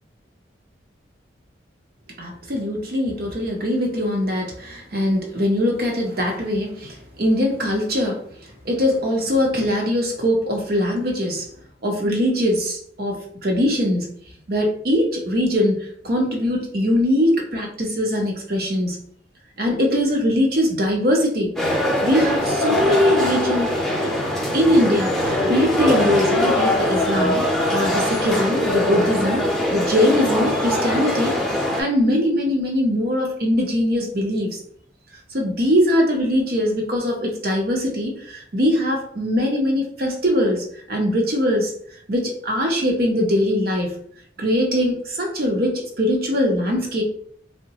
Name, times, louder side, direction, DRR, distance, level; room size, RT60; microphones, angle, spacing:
voice 1, 2.2-11.5 11.8-14.1 14.5-19.0 19.6-24.2 24.5-27.4 27.7-34.6 35.3-41.7 42.1-43.9 44.4-47.0, left 1 dB, 55° right, 1 dB, 0.8 m, -21 dB
sound 1, 21.6-31.8, left 1 dB, ahead, 0.6 m, -22 dB
3.8 x 2.1 x 2.8 m, 0.62 s
head